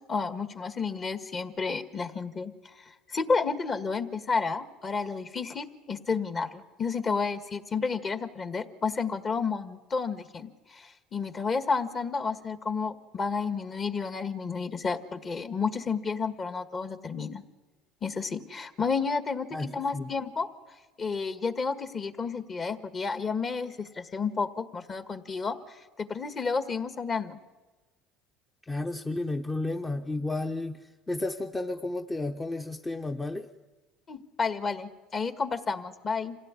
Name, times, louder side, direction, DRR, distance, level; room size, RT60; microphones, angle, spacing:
voice 1, 0.1-2.8 3.1-17.4 18.0-20.5 21.0-27.4 34.1-36.4, left 5 dB, 35° left, 1.7 m, -31 dB
voice 2, 19.5-20.1 28.7-33.5, left 2 dB, 15° left, 0.9 m, -32 dB
26.5 x 17.0 x 9.8 m
supercardioid pair, 105°, 0 cm